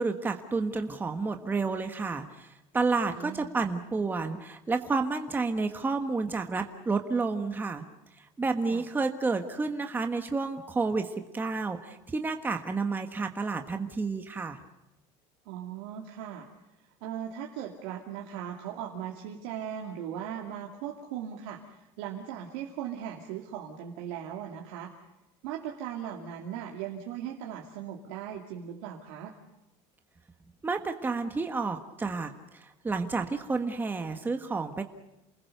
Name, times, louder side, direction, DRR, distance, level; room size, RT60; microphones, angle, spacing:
voice 1, 0.0-7.8 8.2-14.6 30.6-34.8, right 4 dB, 15° right, 6 dB, 1.4 m, -30 dB
voice 2, 3.1-3.5 8.6-8.8 15.5-16.5 17.0-24.9 25.4-29.3, right 9 dB, 80° right, 0 dB, 2.6 m, -38 dB
28.5 x 20.5 x 6.8 m, 0.96 s
cardioid pair, 140°, 14 cm